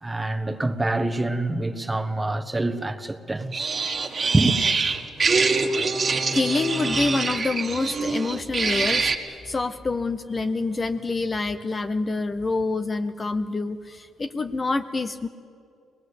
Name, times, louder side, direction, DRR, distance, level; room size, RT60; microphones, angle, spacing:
voice 1, 0.0-3.7 4.3-4.6, right 2 dB, 15° right, 1.3 m, -25 dB
sound 1, 3.5-9.2, right 4 dB, 40° right, 1.8 m, -24 dB
voice 2, 6.0-15.3, left 3 dB, 30° left, 0.7 m, -27 dB
23.5 x 20.0 x 8.3 m
cardioid pair, 90°, 0 cm